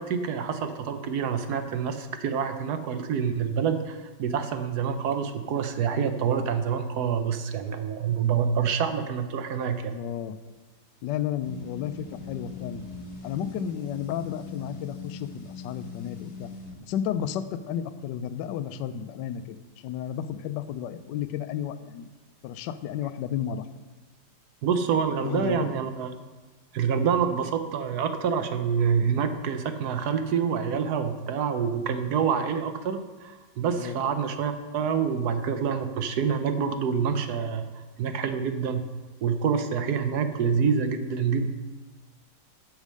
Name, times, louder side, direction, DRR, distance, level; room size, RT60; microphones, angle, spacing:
voice 1, 0.0-9.9 24.6-26.1 26.7-38.8 39.2-41.4, right 6 dB, 70° right, 8 dB, 1.1 m, -27 dB
voice 2, 9.8-10.4 11.0-12.8 13.2-16.5 16.8-22.1 22.4-23.7 25.2-25.7 33.7-34.0, left 9 dB, 75° left, 12 dB, 1.2 m, -32 dB
sound 1, 11.4-16.8, left 4 dB, 40° left, 1.6 m, -41 dB
8.4 x 6.4 x 6.3 m, 1.2 s
omnidirectional pair, 2.0 m